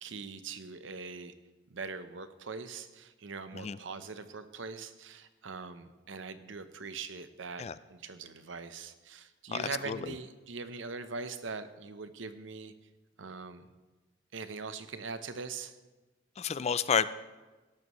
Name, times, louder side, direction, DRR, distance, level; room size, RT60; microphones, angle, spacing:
voice 1, 0.0-1.3 1.7-7.6 7.9-12.7 13.2-13.7 14.3-15.8, right 4 dB, 75° right, 11 dB, 0.8 m, -42 dB
voice 2, 9.5-10.0 16.4-17.1, left 7 dB, 35° left, 15 dB, 0.4 m, -30 dB
17.0 x 12.5 x 3.1 m, 1.2 s
head